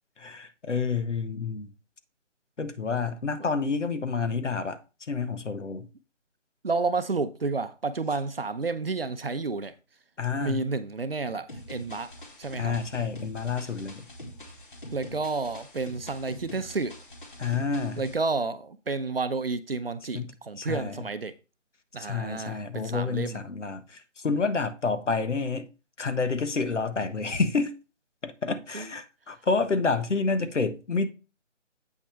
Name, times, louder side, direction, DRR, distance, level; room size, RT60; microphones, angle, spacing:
voice 1, 0.2-1.7 2.6-4.8 5.1-5.9 10.2-10.6 12.6-14.0 17.4-18.0 20.1-20.3 20.6-20.9 22.0-25.7 26.0-27.8 28.2-31.1, left 4 dB, 75° left, 1.4 m, -29 dB
voice 2, 6.6-9.7 10.4-12.1 12.4-12.8 14.9-16.9 18.0-21.3 21.9-23.4 28.7-29.0, right 3 dB, 50° right, 0.7 m, -30 dB
sound 1, 11.5-18.1, left 1 dB, 45° left, 2.5 m, -44 dB
8.3 x 6.1 x 3.4 m
figure-of-eight pair, 175°, 37 cm